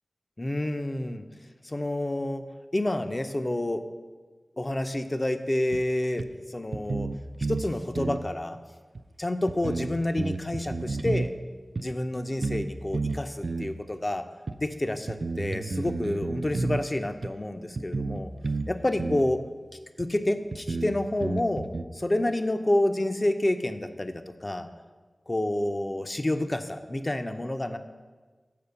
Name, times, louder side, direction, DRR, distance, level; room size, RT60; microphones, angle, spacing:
voice 1, 0.4-1.2 1.6-2.4 2.7-3.8 4.6-7.1 7.5-8.6 9.2-11.3 11.7-14.2 14.6-18.3 18.7-19.4 20.0-24.7 25.3-27.8, left 1 dB, 30° left, 8 dB, 0.5 m, -29 dB
sound 1, 5.7-5.8 6.2-6.3 6.7-7.7 8.0-8.2 9.0-9.1 9.5-11.3 11.8-11.9 12.4-12.7 12.9-13.7 14.5-14.6 15.1-16.8 17.2-17.3 17.8-18.7 19.0-19.3 20.0-20.1 20.5-21.8, right 3 dB, 60° right, 0.3 m, -31 dB
6.7 x 4.9 x 6.8 m, 1.4 s
wide cardioid pair, 60°, 0 cm